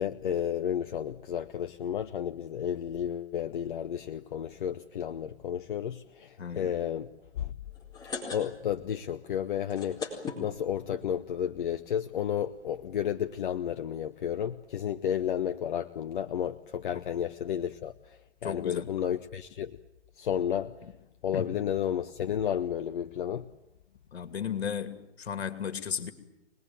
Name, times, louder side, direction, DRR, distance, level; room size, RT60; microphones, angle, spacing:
voice 1, 0.0-7.1 7.3-7.5 8.3-10.0 10.4-19.8 20.2-20.7 21.2-23.5, left 9 dB, 45° left, 0.9 m, -32 dB
voice 2, 6.4-6.8 16.9-17.1 18.4-18.9 20.8-20.9 21.3-21.6 24.1-26.1, left 7 dB, 60° left, 2.7 m, -35 dB
sound 1, 7.7-8.9 9.1-9.2 9.6-11.0 11.7-11.8 12.1-12.2 12.3-12.6, left 5 dB, 10° left, 4.3 m, -38 dB
25.0 x 20.0 x 9.2 m
figure-of-eight pair, 135°, 34 cm